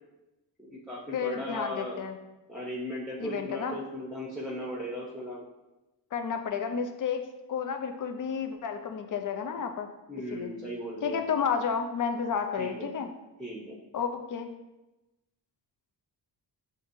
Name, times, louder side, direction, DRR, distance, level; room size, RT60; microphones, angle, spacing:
voice 1, 0.6-2.0 2.5-5.4 10.1-11.2 12.6-12.9 13.4-13.8, equal, ahead, -5 dB, 0.8 m, -37 dB
voice 2, 1.1-2.2 3.2-3.8 6.1-9.9 10.3-10.5 11.0-13.1 13.9-14.5, left 6 dB, 45° left, 5 dB, 0.5 m, -31 dB
7.7 x 2.6 x 2.6 m, 1.0 s
wide cardioid pair, 125°, 45 cm